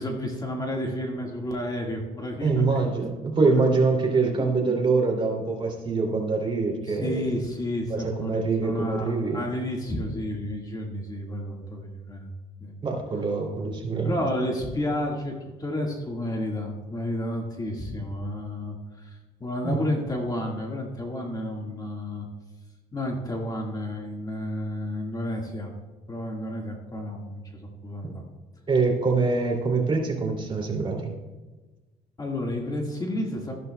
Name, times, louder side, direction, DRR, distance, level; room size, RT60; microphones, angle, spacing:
voice 1, 0.0-2.9 3.5-3.7 4.2-4.8 6.9-12.3 12.6-12.8 14.0-15.3 15.6-22.3 22.9-25.8 26.1-28.2 32.2-33.5, left 1 dB, 20° left, 0 dB, 1.7 m, -31 dB
voice 2, 2.4-7.2 7.9-9.4 12.8-14.2 19.6-19.8 28.7-31.1, right 4 dB, 30° right, 1 dB, 2.6 m, -24 dB
14.0 x 12.0 x 2.3 m, 1.2 s
cardioid pair, 110°, 17 cm